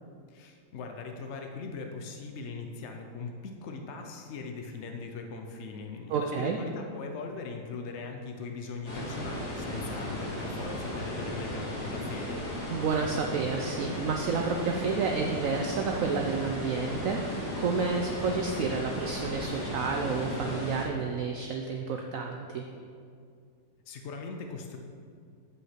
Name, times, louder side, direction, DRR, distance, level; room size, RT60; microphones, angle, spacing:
voice 1, 0.3-12.4 23.9-24.8, left 4 dB, 80° left, 3 dB, 0.6 m, -40 dB
voice 2, 6.1-6.6 12.7-22.7, right 5 dB, 75° right, 2 dB, 0.7 m, -30 dB
sound 1, 8.8-20.8, left 1 dB, 55° left, 2.8 m, -36 dB
8.1 x 5.5 x 5.8 m, 2.2 s
omnidirectional pair, 2.0 m